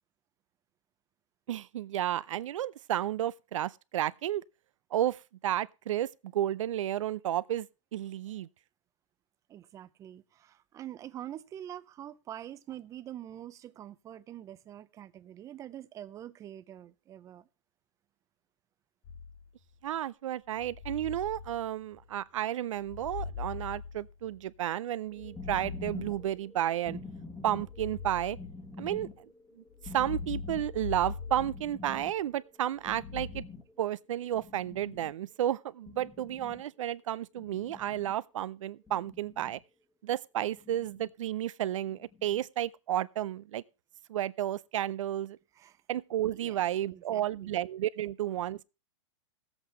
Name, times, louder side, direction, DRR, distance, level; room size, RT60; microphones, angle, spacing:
voice 1, 1.5-4.4 4.9-8.5 19.8-27.0 27.4-28.4 28.8-29.3 29.6-33.4 33.8-39.6 40.0-43.6 44.1-45.4 45.9-48.6, right 12 dB, 85° right, 0.5 m, -32 dB
voice 2, 9.5-17.5 45.5-45.8 46.3-47.6, right 11 dB, 20° right, 0.5 m, -45 dB
sound 1, 19.0-19.7 20.5-22.2 22.8-24.6 25.1-26.7 27.5-29.1 29.7-32.2 32.8-33.4, left 5 dB, 45° left, 2.6 m, -42 dB
sound 2, 25.1-33.9 34.1-35.3 35.9-36.6 37.4-38.1 38.9-39.6 40.4-41.1 41.9-42.5, left 3 dB, 10° left, 1.3 m, -47 dB
18.5 x 8.0 x 3.1 m
hypercardioid pair, 145°, 16 cm